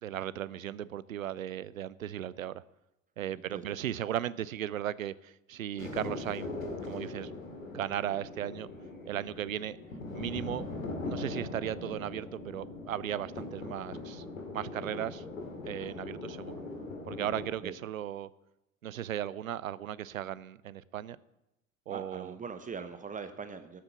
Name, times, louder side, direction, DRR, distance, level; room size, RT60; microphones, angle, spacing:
voice 1, 0.0-2.6 3.2-6.5 6.8-7.3 7.7-8.7 9.1-9.8 10.1-10.7 11.0-14.2 14.5-15.2 15.6-16.5 17.1-18.3 18.8-21.2 21.9-22.4, right 11 dB, 80° right, 0.6 m, -36 dB
voice 2, 3.3-3.6 14.7-14.8 17.6-17.7 21.9-23.8, right 5 dB, 20° right, 0.9 m, -41 dB
sound 1, 5.8-17.5, left 3 dB, 75° left, 2.3 m, -41 dB
13.0 x 7.9 x 6.7 m
figure-of-eight pair, 70°, 40 cm